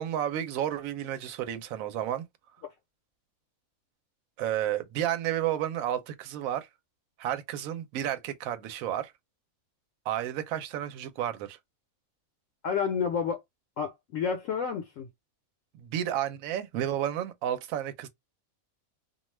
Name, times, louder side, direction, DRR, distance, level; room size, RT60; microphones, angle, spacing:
voice 1, 0.0-2.2 4.4-6.7 7.2-9.1 10.1-11.6 15.7-18.1, right 11 dB, 75° right, 1.0 m, -31 dB
voice 2, 12.6-13.4 13.8-15.1, left 6 dB, 70° left, 0.9 m, -30 dB
2.4 x 2.2 x 3.1 m
omnidirectional pair, 1.5 m